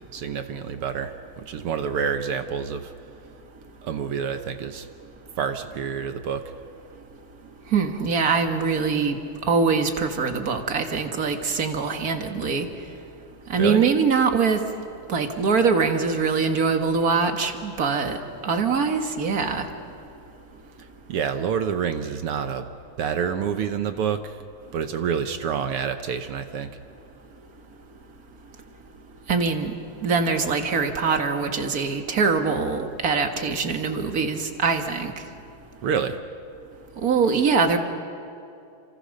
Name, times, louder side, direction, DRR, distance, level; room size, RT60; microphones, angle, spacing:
voice 1, 0.0-2.9 3.8-4.9 5.4-6.4 13.6-13.8 21.1-22.7 23.0-24.4 24.7-26.7 35.8-36.2, right 7 dB, 65° right, 9 dB, 1.5 m, -28 dB
voice 2, 7.7-9.2 9.5-12.7 13.5-14.6 15.1-18.2 18.4-19.6 29.3-29.7 30.0-35.1 37.0-37.8, right 5 dB, 40° right, 6 dB, 1.5 m, -23 dB
29.5 x 26.0 x 6.5 m, 2.6 s
omnidirectional pair, 3.4 m